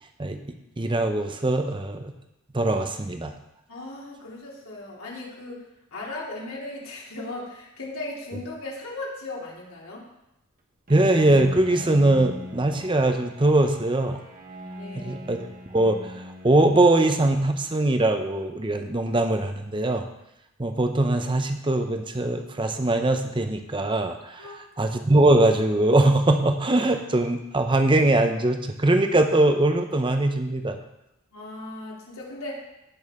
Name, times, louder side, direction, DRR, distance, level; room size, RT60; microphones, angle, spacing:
voice 1, 0.8-2.1 2.5-3.3 10.9-14.2 14.9-15.5 15.7-20.1 20.6-30.8, right 2 dB, 20° right, 6 dB, 0.7 m, -22 dB
voice 2, 3.7-10.0 14.8-15.3 24.4-24.7 31.3-32.6, left 2 dB, 70° left, -4 dB, 2.9 m, -37 dB
Bowed string instrument, 10.9-18.0, equal, 40° right, 1.3 m, -41 dB
16.0 x 6.3 x 3.7 m, 0.88 s
head